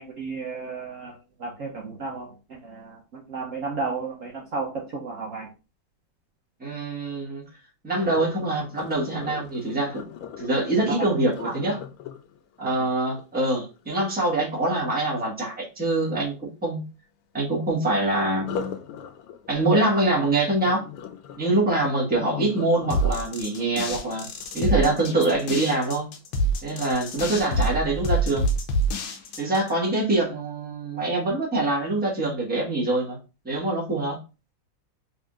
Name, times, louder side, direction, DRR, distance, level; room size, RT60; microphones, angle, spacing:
voice 1, 0.0-5.5 10.9-11.0 11.4-11.8 12.6-12.7, right 4 dB, 85° right, 0.7 m, -33 dB
voice 2, 6.6-7.4 7.8-10.0 10.4-11.7 12.6-16.8 17.3-18.8 19.5-20.8 21.4-24.3 24.5-26.1 26.6-28.5 29.4-33.2 33.4-34.2, right 2 dB, 5° right, 0.9 m, -24 dB
Sink (filling or washing), 8.0-14.0 18.3-25.4 25.9-26.2 26.7-26.8, left 7 dB, 85° left, 1.5 m, -40 dB
sound 1, 22.9-29.7, right 1 dB, 70° left, 1.2 m, -26 dB
3.9 x 3.5 x 2.4 m
omnidirectional pair, 2.4 m